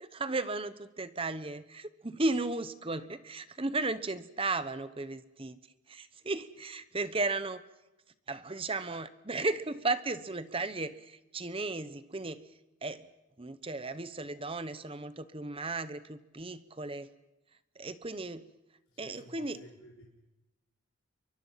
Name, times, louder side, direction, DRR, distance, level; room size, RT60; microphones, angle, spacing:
voice 1, 0.0-5.6 5.9-7.6 8.3-12.5 12.8-13.1 13.4-17.1 17.8-18.5 19.0-19.6, right 3 dB, 25° right, 13 dB, 0.9 m, -35 dB
voice 2, 18.9-20.0, left 1 dB, 75° left, -2 dB, 4.2 m, -53 dB
28.5 x 24.0 x 5.7 m, 0.99 s
head